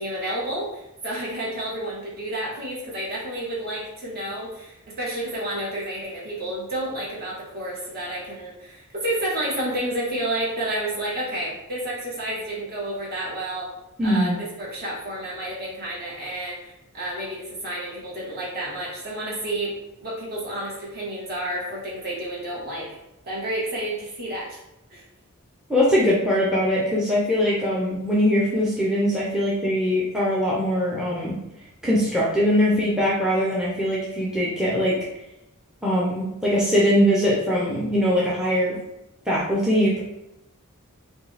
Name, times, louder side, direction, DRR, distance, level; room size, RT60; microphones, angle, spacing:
voice 1, 0.0-13.7 14.0-23.0 23.3-24.6 24.9-25.0, right 1 dB, 45° right, -5 dB, 1.5 m, -30 dB
voice 2, 14.0-14.4 25.7-31.4 31.8-35.0 35.8-38.8 39.3-40.0, equal, 5° right, -5 dB, 0.7 m, -21 dB
5.0 x 2.3 x 3.3 m, 0.90 s
head